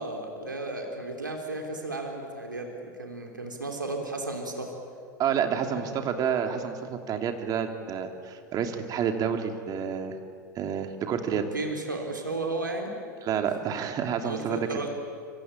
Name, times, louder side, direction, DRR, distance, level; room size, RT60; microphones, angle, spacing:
voice 1, 0.0-4.7 5.6-6.1 11.3-12.9 14.2-14.9, right 2 dB, 90° right, 2 dB, 3.4 m, -34 dB
voice 2, 5.2-10.2 10.5-11.5 13.2-14.7, right 7 dB, 40° right, 5 dB, 3.2 m, -29 dB
26.0 x 24.0 x 9.1 m, 2.3 s
figure-of-eight pair, 85°, 10 cm